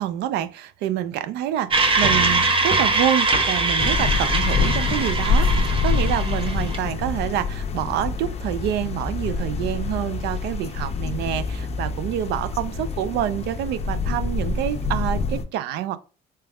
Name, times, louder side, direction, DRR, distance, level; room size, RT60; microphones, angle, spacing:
voice 1, 0.0-16.0, right 11 dB, 85° right, 0.4 m, -27 dB
sound 1, 1.7-6.8, right 3 dB, 30° right, 0.8 m, -22 dB
sound 2, 3.8-15.4, left 4 dB, 40° left, 0.6 m, -26 dB
sound 3, 5.1-12.8, left 5 dB, 60° right, 1.2 m, -38 dB
4.3 x 3.4 x 2.3 m
cardioid pair, 110°, 17 cm